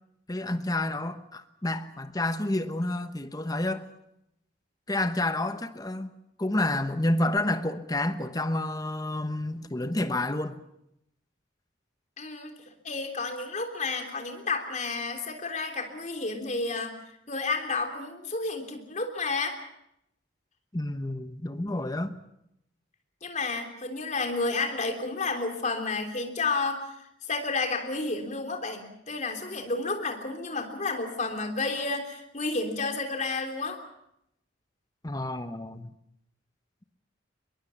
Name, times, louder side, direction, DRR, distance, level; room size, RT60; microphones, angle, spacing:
voice 1, 0.3-3.9 4.9-6.1 6.4-10.6 20.7-22.1 35.0-35.9, left 1 dB, 20° left, 1.1 m, -29 dB
voice 2, 12.2-12.5 12.8-16.9 17.3-19.6 23.2-33.8, left 3 dB, 40° left, 3.4 m, -31 dB
23.0 x 22.0 x 7.1 m
head